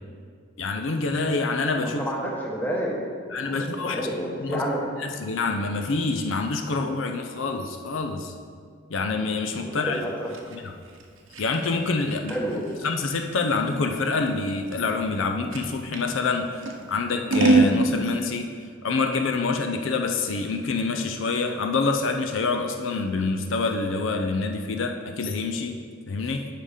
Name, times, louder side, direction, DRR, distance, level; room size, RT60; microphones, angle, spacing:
voice 1, 0.6-2.0 3.3-4.1 4.4-4.6 5.0-8.3 8.9-10.0 10.5-10.7 11.4-12.4 12.8-18.5 18.8-26.5, left 3 dB, 75° left, 4 dB, 0.5 m, -26 dB
voice 2, 1.8-3.0 3.4-4.8 9.6-10.3 12.3-12.6, equal, 10° left, -3 dB, 1.1 m, -30 dB
Scissors, 9.9-16.1 16.6-17.8, right 3 dB, 80° right, 0.8 m, -26 dB
7.6 x 5.1 x 5.0 m, 2.1 s
head